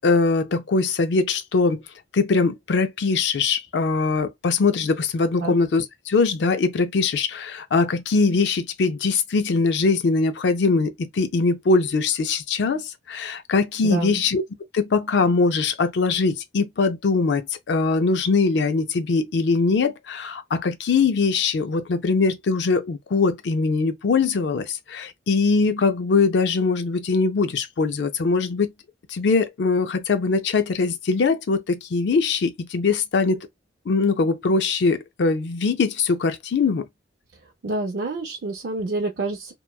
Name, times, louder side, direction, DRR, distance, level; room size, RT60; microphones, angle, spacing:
voice 1, 0.0-1.8 2.1-14.4 14.7-28.7 29.1-33.5 33.9-36.9, left 4 dB, 75° left, 0.4 m, -22 dB
voice 2, 13.8-14.2 37.6-39.5, right 2 dB, 65° right, 0.5 m, -28 dB
2.9 x 2.2 x 2.2 m
head